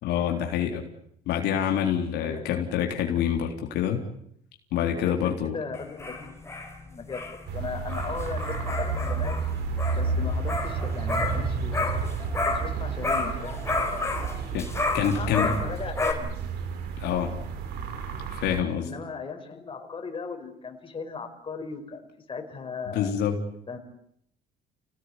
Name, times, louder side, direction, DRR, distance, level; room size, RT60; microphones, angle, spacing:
voice 1, 0.0-0.8 1.3-4.0 4.7-5.5 14.5-14.7 14.9-15.5 17.0-17.3 18.3-18.9 22.9-23.3, left 9 dB, 80° left, 3 dB, 3.8 m, -26 dB
voice 2, 2.2-2.5 4.9-6.4 6.8-9.4 9.9-11.9 12.4-13.6 15.0-16.3 18.8-23.1 23.7-23.8, left 5 dB, 30° left, 4 dB, 5.4 m, -37 dB
sound 1, 5.7-12.8 13.0-16.1, left 3 dB, 15° left, 4.7 m, -31 dB
sound 2, 7.5-18.6, right 5 dB, 80° right, 3.9 m, -31 dB
28.0 x 18.5 x 9.9 m, 0.73 s
cardioid pair, 110°, 17 cm